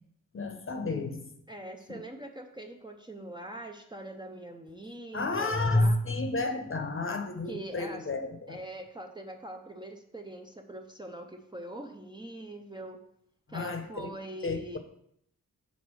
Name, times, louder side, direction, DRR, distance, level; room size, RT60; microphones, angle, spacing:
voice 1, 0.3-1.3 1.9-2.0 5.1-8.6 13.5-14.1 14.4-14.8, left 2 dB, 40° left, 0.8 m, -30 dB
voice 2, 1.5-6.0 7.5-8.1 8.5-13.0 13.5-14.8, right 1 dB, 15° right, 0.5 m, -43 dB
6.3 x 3.9 x 6.2 m
wide cardioid pair, 125°, 33 cm